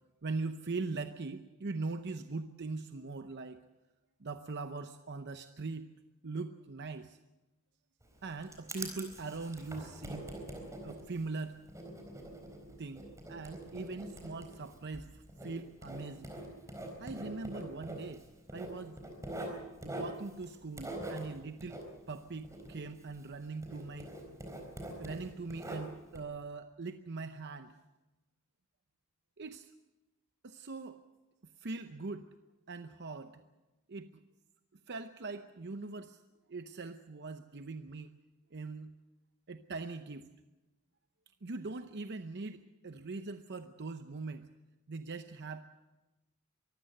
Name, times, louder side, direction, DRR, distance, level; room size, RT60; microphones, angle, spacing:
voice 1, 0.2-3.6 4.2-5.9 6.2-7.2 8.2-10.3 10.8-11.6 12.8-16.3 17.0-18.2 18.5-19.0 19.8-21.8 22.1-24.1 25.0-27.7 29.4-29.7 30.4-31.0 31.6-32.3 32.7-33.4 33.9-34.2 34.9-36.2 36.5-38.1 38.5-38.9 39.5-40.3 41.4-44.5 44.9-45.6, right 3 dB, 55° right, 9 dB, 0.8 m, -41 dB
Writing, 8.0-23.4 23.6-26.2, right 1 dB, 15° right, 4.1 m, -44 dB
23.5 x 15.5 x 7.9 m, 1.1 s
head